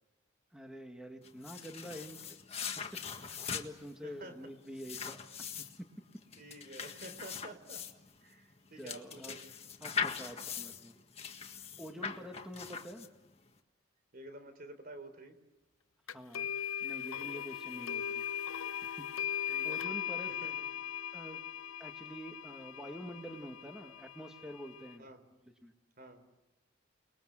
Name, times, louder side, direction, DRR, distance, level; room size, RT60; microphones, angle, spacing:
voice 1, 0.5-2.2 3.2-5.2 5.8-5.9 8.8-9.4 9.8-11.0 11.8-13.1 16.1-18.2 18.8-20.3 21.1-21.4 21.8-25.1 25.4-25.7, equal, 5° right, 4 dB, 1.8 m, -47 dB
sound 1, 1.2-13.4, left 6 dB, 30° left, 1.7 m, -41 dB
voice 2, 4.0-4.4 6.3-7.8 8.2-9.5 10.2-10.4 11.9-12.3 14.1-15.4 17.7-17.9 19.5-19.8 20.4-20.5 25.0-25.3 26.0-26.2, right 1 dB, 45° right, 9 dB, 3.7 m, -50 dB
sound 2, 16.1-24.9, left 9 dB, 90° left, 0.8 m, -39 dB
29.5 x 21.5 x 7.7 m, 1.0 s
head